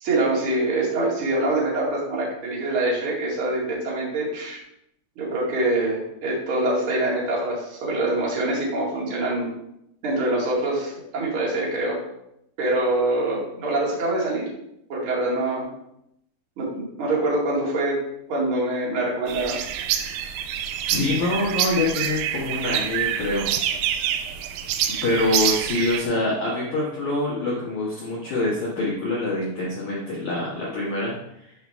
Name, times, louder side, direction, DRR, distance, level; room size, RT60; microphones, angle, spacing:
voice 1, 0.0-4.6 5.1-9.5 10.0-12.0 12.6-14.5 14.9-15.7 16.6-18.0 18.3-19.6, right 2 dB, 50° right, -5 dB, 1.6 m, -24 dB
sound 1, 19.3-26.0, right 10 dB, 85° right, 3.3 m, -26 dB
voice 2, 20.9-23.5 25.0-31.2 31.4-31.5, left 2 dB, 90° left, -6 dB, 1.6 m, -25 dB
8.8 x 5.1 x 3.5 m, 0.80 s
omnidirectional pair, 6.0 m